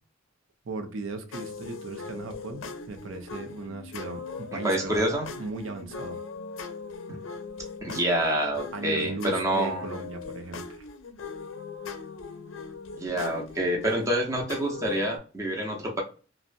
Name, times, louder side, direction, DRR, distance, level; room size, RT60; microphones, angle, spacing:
voice 1, 0.7-5.1 5.4-6.2 8.7-10.8, right 3 dB, 85° right, 6 dB, 0.5 m, -37 dB
sound 1, 1.3-15.2, left 4 dB, 75° left, 0.4 m, -40 dB
voice 2, 4.6-5.3 7.1-7.2 7.8-9.9 13.0-16.0, right 1 dB, 15° right, -1 dB, 0.6 m, -27 dB
2.6 x 2.0 x 2.4 m, 0.37 s
head